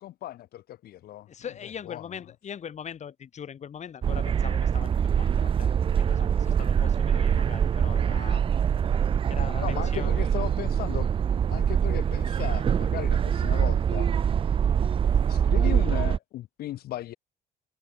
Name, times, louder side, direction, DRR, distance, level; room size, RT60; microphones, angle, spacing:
voice 1, 0.0-1.3 1.6-2.2 9.6-11.1 11.5-14.3 15.1-17.2, left 14 dB, 65° left, 1.2 m, -37 dB
voice 2, 1.3-5.7 6.0-8.5 9.3-10.1, left 8 dB, 45° left, 2.5 m, -41 dB
sound 1, 4.0-16.2, right 8 dB, 30° right, 0.4 m, -24 dB
cardioid pair, 110°, 17 cm